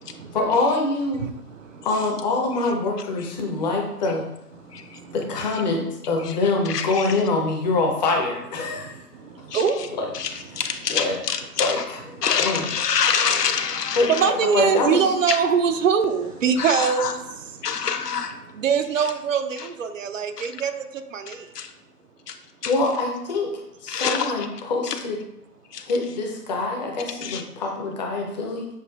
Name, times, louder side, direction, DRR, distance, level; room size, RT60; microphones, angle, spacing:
voice 1, 0.3-1.3 1.8-4.2 5.1-8.9 10.0-10.1 10.9-11.1 11.6-11.8 12.4-12.6 14.0-14.1 14.5-15.1 22.7-23.5 23.8-25.2 25.8-28.7, left 3 dB, 30° left, 1 dB, 0.6 m, -24 dB
voice 2, 4.7-5.1 5.4-5.6 6.2-6.4 6.6-7.2 9.2-9.9 10.1-11.9 12.2-14.3 15.3-15.4 16.6-17.1 17.6-18.4 19.0-19.1 19.6-19.7 20.4-20.5 21.3-21.7 22.3-22.4 22.6-22.8 23.9-24.5 24.8-25.0 25.7-25.9 27.2-27.4, left 7 dB, 80° left, 7 dB, 0.7 m, -27 dB
voice 3, 14.1-17.2 18.6-20.7 21.1-21.4, right 6 dB, 55° right, 8 dB, 0.5 m, -22 dB
7.0 x 2.4 x 2.3 m, 0.84 s
figure-of-eight pair, 130°, 47 cm